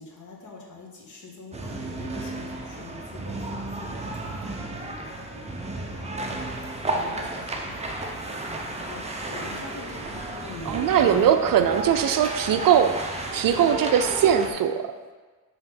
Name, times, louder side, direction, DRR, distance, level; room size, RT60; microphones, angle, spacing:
voice 1, 0.0-6.1 6.5-6.6 6.9-8.0 8.3-11.3 13.6-13.8, left 3 dB, 50° left, -2 dB, 1.5 m, -43 dB
sound 1, 1.5-14.5, right 2 dB, 15° right, 0.7 m, -33 dB
voice 2, 10.7-14.9, right 9 dB, 60° right, 8 dB, 0.5 m, -21 dB
5.6 x 3.6 x 5.8 m, 1.3 s
cardioid pair, 115°, 38 cm